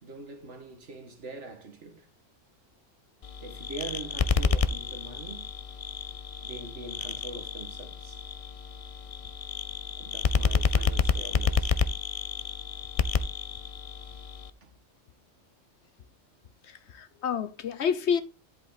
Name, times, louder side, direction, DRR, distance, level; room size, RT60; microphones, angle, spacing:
voice 1, 0.0-2.1 3.4-5.5 6.4-8.2 10.0-11.8 14.6-14.7, right 2 dB, 65° right, 2.0 m, -43 dB
sound 1, 3.2-14.5, left 5 dB, 50° left, 0.4 m, -30 dB
voice 2, 16.6-18.2, left 7 dB, 65° left, 1.0 m, -29 dB
11.0 x 5.3 x 4.0 m
omnidirectional pair, 1.3 m